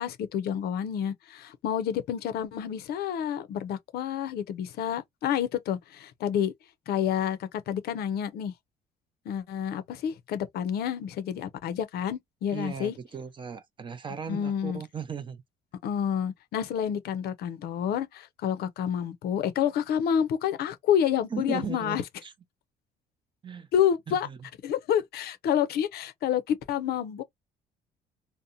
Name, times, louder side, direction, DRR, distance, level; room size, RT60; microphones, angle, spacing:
voice 1, 0.0-6.5 6.9-8.5 9.3-12.9 14.3-14.8 15.8-22.0 23.7-24.3 24.6-27.2, left 9 dB, 70° left, 0.5 m, -29 dB
voice 2, 12.5-15.4 21.3-22.3 23.4-23.7 24.1-24.4, right 6 dB, 30° right, 0.5 m, -37 dB
2.7 x 2.1 x 2.4 m
cardioid pair, 110°, 17 cm